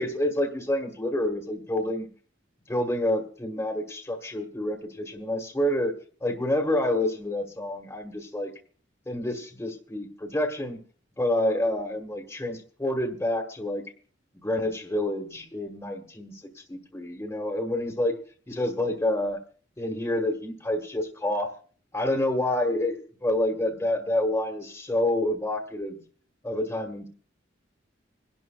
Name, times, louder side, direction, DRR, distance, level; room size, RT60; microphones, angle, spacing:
voice 1, 0.0-2.1 2.7-5.9 6.2-8.5 9.1-10.8 11.2-13.8 14.3-16.4 16.7-18.1 18.5-19.4 19.8-21.6 21.9-26.0 26.4-27.1, left 1 dB, 15° left, 1 dB, 1.3 m, -28 dB
26.5 x 11.5 x 2.2 m, 0.42 s
head